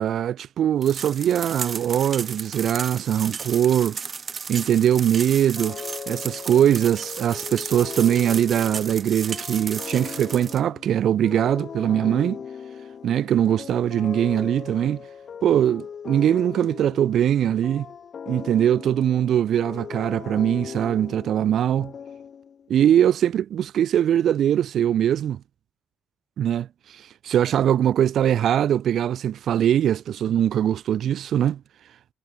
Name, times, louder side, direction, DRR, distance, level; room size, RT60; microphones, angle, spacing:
voice 1, 0.0-4.0 4.5-5.8 6.1-12.4 13.0-15.0 15.4-17.9 18.3-21.9 22.7-25.4 26.4-31.6, right 10 dB, 70° right, 0.6 m, -21 dB
sound 1, 0.8-10.6, right 5 dB, 40° right, 1.4 m, -34 dB
sound 2, 5.6-22.7, left 7 dB, 50° left, 3.4 m, -39 dB
cardioid pair, 90°, 0 cm